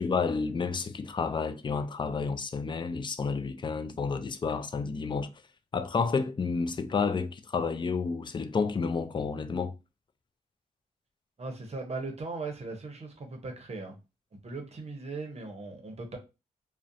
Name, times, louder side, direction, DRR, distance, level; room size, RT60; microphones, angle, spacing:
voice 1, 0.0-5.3 5.7-9.7, left 5 dB, 30° left, 0.3 m, -30 dB
voice 2, 11.4-14.0 14.4-16.2, right 3 dB, 40° right, 0.7 m, -38 dB
2.4 x 2.1 x 2.6 m
cardioid pair, 70°, 16 cm